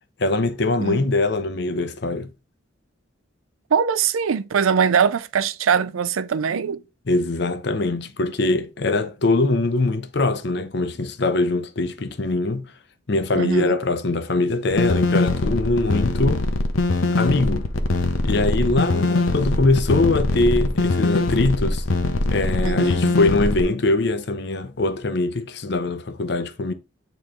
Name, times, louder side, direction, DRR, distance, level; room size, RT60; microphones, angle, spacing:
voice 1, 0.2-2.3 7.1-12.7 13.1-16.4 17.1-17.7 18.2-21.8 22.3-26.7, left 2 dB, 55° left, 0.6 m, -22 dB
voice 2, 3.7-6.8 13.3-13.8 22.6-23.2, right 7 dB, 90° right, 0.5 m, -22 dB
sound 1, 14.7-23.6, left 2 dB, 85° left, 0.8 m, -22 dB
8.6 x 3.1 x 3.7 m
head